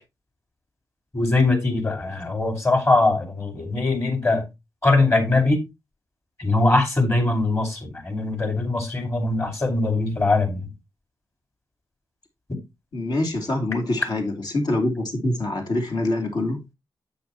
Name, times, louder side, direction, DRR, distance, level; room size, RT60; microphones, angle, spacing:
voice 1, 1.1-4.4 4.8-5.6 6.4-10.7, left 2 dB, 35° left, 5.3 m, -21 dB
voice 2, 12.9-16.6, left 2 dB, 65° left, 3.2 m, -25 dB
10.0 x 8.8 x 3.1 m
cardioid pair, 70°, 8 cm